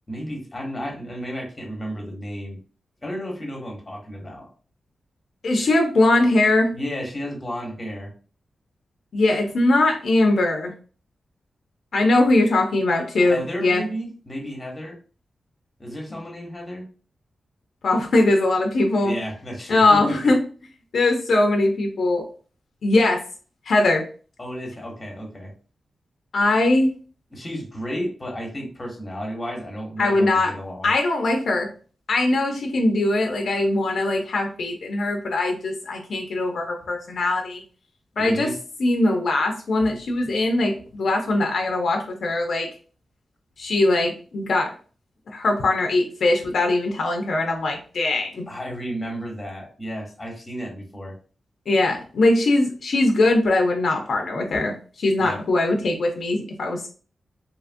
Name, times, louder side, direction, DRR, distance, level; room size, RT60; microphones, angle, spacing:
voice 1, 0.1-2.6 3.0-4.5 6.7-8.1 13.2-15.0 15.8-16.9 19.0-20.3 24.4-25.5 27.3-30.9 38.2-38.5 48.5-51.2 55.2-55.4, equal, 20° left, 0 dB, 0.8 m, -33 dB
voice 2, 5.4-6.7 9.1-10.7 11.9-13.8 17.8-19.1 19.7-20.4 20.9-22.2 22.8-23.2 23.7-24.0 26.3-26.9 30.0-30.5 30.8-31.7 32.1-37.6 38.2-38.5 38.8-42.7 43.6-44.7 45.3-48.4 51.7-56.9, left 2 dB, 65° left, 2 dB, 0.4 m, -21 dB
2.8 x 2.4 x 2.5 m, 0.39 s
wide cardioid pair, 135°, 0 cm